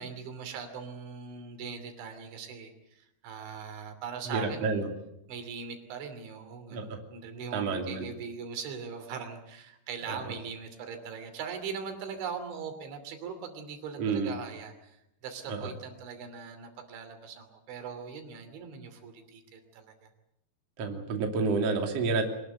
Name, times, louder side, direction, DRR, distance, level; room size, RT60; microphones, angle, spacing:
voice 1, 0.0-4.8 5.3-15.0 15.2-20.1, right 6 dB, 80° right, 7 dB, 5.2 m, -40 dB
voice 2, 4.3-4.9 6.7-7.0 7.5-8.0 14.0-14.3 15.5-15.7 20.8-22.3, right 4 dB, 40° right, 3 dB, 3.2 m, -29 dB
25.0 x 20.0 x 8.1 m, 0.82 s
omnidirectional pair, 5.2 m